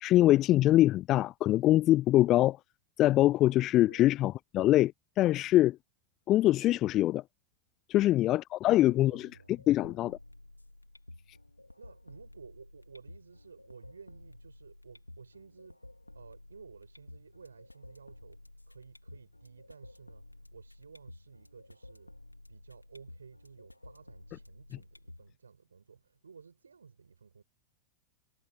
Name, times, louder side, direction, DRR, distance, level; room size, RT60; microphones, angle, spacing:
voice 1, 0.0-2.6 3.0-4.9 5.2-5.8 6.3-7.2 7.9-9.3 9.7-10.2, left 15 dB, 35° left, 0.5 m, -24 dB
voice 2, 8.0-8.3 8.7-9.6 11.8-15.8 16.1-22.2 22.5-27.4, right 5 dB, 75° right, 6.4 m, -54 dB
sound 1, 9.3-25.3, left 1 dB, 85° left, 3.7 m, -53 dB
figure-of-eight pair, 90°, 0 cm